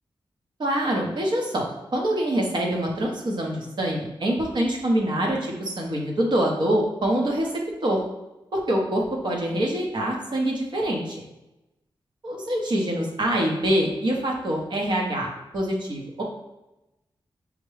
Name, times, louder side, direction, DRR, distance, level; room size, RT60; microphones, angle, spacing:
voice 1, 0.6-1.7 1.9-7.5 7.8-8.0 8.5-11.2 12.2-15.3 15.5-16.2, right 1 dB, 60° right, -1 dB, 0.9 m, -25 dB
5.0 x 2.2 x 3.2 m, 0.96 s
wide cardioid pair, 90°, 9 cm